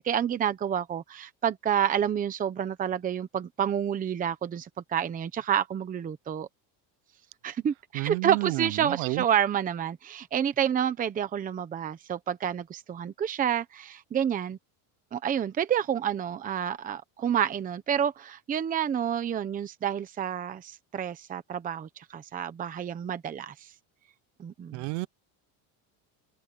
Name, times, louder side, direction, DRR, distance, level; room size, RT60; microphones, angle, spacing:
voice 1, 0.0-6.5 7.4-14.6 15.1-23.5 24.4-24.8, right 9 dB, 20° right, 0.9 m, -29 dB
voice 2, 7.9-9.2 24.7-25.1, right 25 dB, 75° right, 0.7 m, -31 dB
cardioid pair, 175°, 43 cm